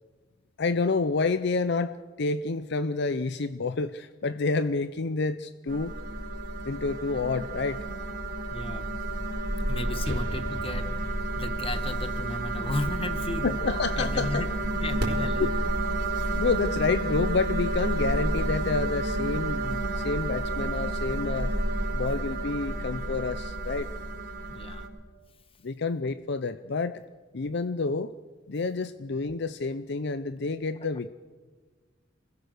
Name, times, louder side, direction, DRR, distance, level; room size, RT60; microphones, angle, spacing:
voice 1, 0.6-5.9 6.6-7.8 10.1-10.2 13.4-14.4 15.4-15.5 16.4-21.5 21.9-23.9 25.6-27.0 27.3-28.1 28.5-31.1, left 4 dB, 60° left, 12 dB, 0.6 m, -29 dB
sound 1, 5.7-24.9, right 2 dB, 55° right, 4.9 m, -30 dB
voice 2, 8.5-8.9 9.7-13.6 14.0-14.5 14.8-15.5 24.4-24.9, left 2 dB, 30° left, 9 dB, 1.4 m, -35 dB
Explosion, 10.1-13.8, equal, 90° right, 3.2 m, -41 dB
27.0 x 20.5 x 6.6 m, 1.4 s
head